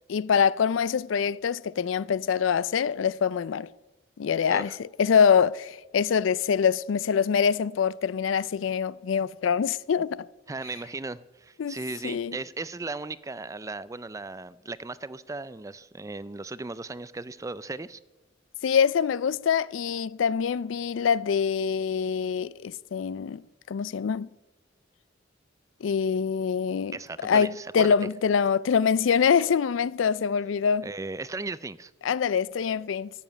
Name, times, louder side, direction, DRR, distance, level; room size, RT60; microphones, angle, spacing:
voice 1, 0.1-3.7 4.2-10.3 11.6-11.7 12.0-12.4 18.6-23.4 23.7-24.3 25.8-27.0 27.2-30.9 32.0-33.1, left 7 dB, 80° left, 0.4 m, -24 dB
voice 2, 10.5-18.0 26.9-27.9 30.8-31.9, right 3 dB, 15° right, 0.4 m, -36 dB
14.0 x 7.1 x 9.4 m
head